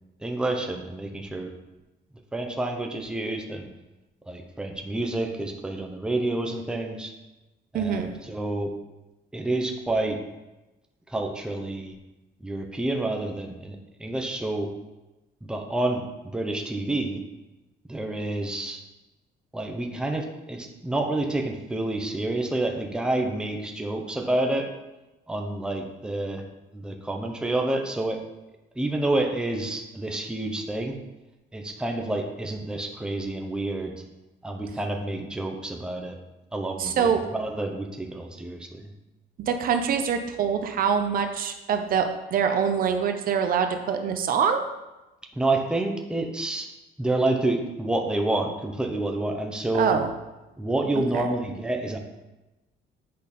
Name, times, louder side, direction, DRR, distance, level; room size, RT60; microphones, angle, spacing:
voice 1, 0.2-1.5 2.3-3.7 4.3-7.1 7.7-8.7 9.3-10.2 11.1-11.9 12.4-14.7 15.5-16.0 16.3-17.2 17.9-18.8 19.5-24.7 25.3-26.5 26.7-28.2 28.8-30.9 31.5-34.0 34.4-36.2 36.5-38.9 45.3-46.7 47.0-50.0 50.6-52.0, right 2 dB, 5° right, 2 dB, 0.7 m, -28 dB
voice 2, 7.7-8.1 36.8-37.2 39.4-44.6 49.7-50.1 51.1-51.3, right 7 dB, 50° right, 6 dB, 0.7 m, -24 dB
8.4 x 5.1 x 4.2 m, 1.0 s
cardioid pair, 155°, 18 cm